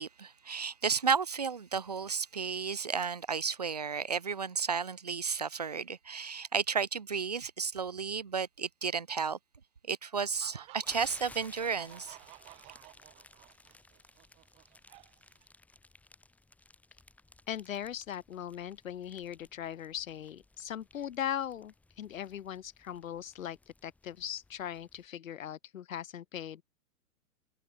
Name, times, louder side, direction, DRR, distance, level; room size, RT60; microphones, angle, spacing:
voice 1, 0.0-9.4 9.9-12.2, right 6 dB, 30° right, 0.4 m, -33 dB
sound 1, 10.2-15.4, right 21 dB, 15° right, 1.2 m, -55 dB
sound 2, 10.8-25.1, left 2 dB, 5° left, 5.9 m, -58 dB
voice 2, 17.5-26.6, left 10 dB, 60° left, 3.3 m, -39 dB
hypercardioid pair, 175°, 46 cm